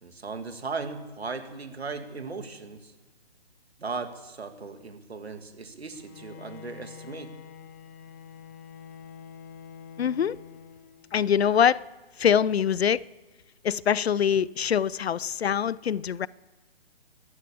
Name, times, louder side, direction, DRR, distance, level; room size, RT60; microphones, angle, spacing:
voice 1, 0.0-2.9 3.8-7.4, right 4 dB, 85° right, 2.3 m, -37 dB
Bowed string instrument, 5.9-11.3, left 8 dB, 15° left, 0.4 m, -47 dB
voice 2, 10.0-10.4 11.1-11.9 12.2-13.1 13.6-16.3, left 8 dB, 80° left, 0.6 m, -24 dB
14.5 x 12.5 x 7.0 m
hypercardioid pair, 140°, 31 cm